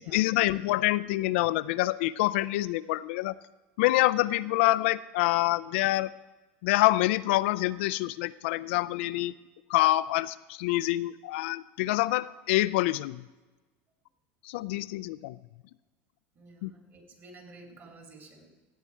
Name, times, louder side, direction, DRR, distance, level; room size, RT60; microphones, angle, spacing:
voice 1, 0.0-3.3 3.8-6.1 6.6-9.3 9.7-13.2 14.4-15.4 16.6-16.7, left 17 dB, 80° left, 15 dB, 0.4 m, -26 dB
voice 2, 16.4-18.5, right 2 dB, 40° right, 3 dB, 2.8 m, -51 dB
15.5 x 8.3 x 4.6 m, 1.2 s
supercardioid pair, 120°, 6 cm